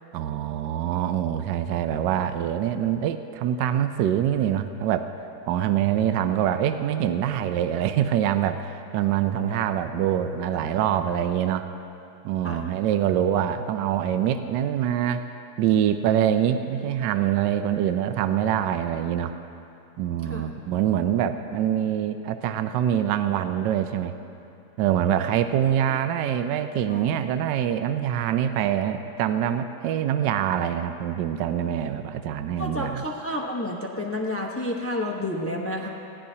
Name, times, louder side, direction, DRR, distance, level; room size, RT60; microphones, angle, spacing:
voice 1, 0.1-5.1 5.5-11.7 12.2-15.2 15.6-19.3 20.0-24.1 24.8-33.0, right 10 dB, 70° right, 9 dB, 1.1 m, -24 dB
voice 2, 32.6-35.9, left 1 dB, 20° left, -1 dB, 0.3 m, -30 dB
20.0 x 16.5 x 2.8 m, 2.7 s
omnidirectional pair, 2.2 m